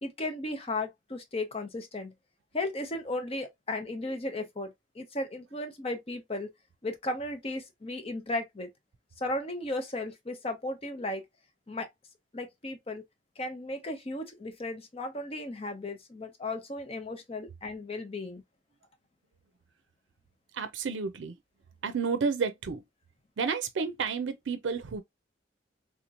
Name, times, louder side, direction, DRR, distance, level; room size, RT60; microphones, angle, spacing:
voice 1, 0.0-2.1 2.5-6.5 6.8-8.7 9.2-11.2 11.7-11.9 12.3-13.0 13.4-18.4, left 2 dB, 35° left, 0.8 m, -35 dB
voice 2, 20.5-21.4 21.8-22.8 23.4-25.0, right 5 dB, 90° right, 0.5 m, -31 dB
3.6 x 2.9 x 2.4 m
head